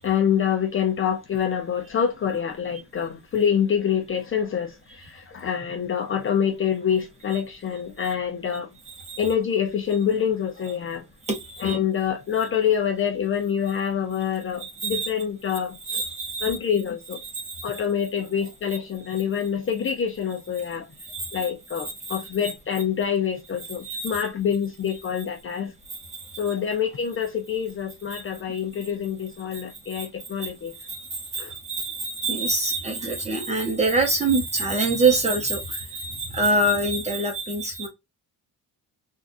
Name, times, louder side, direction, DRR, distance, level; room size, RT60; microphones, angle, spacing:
voice 1, 0.0-8.7 9.2-11.0 11.6-16.0 16.4-17.2 17.6-20.9 21.3-25.7 26.4-30.7 31.3-31.5, left 8 dB, 35° left, 0.6 m, -26 dB
voice 2, 8.9-9.2 11.3-11.8 14.6-15.1 15.9-16.6 17.3-17.7 21.0-21.5 22.0-22.5 23.8-24.1 26.1-26.4 28.1-28.2 29.5-29.6 29.9-30.1 30.4-30.5 30.7-37.9, right 2 dB, 20° right, 0.8 m, -26 dB
3.6 x 2.4 x 2.5 m
cardioid pair, 165°, 38 cm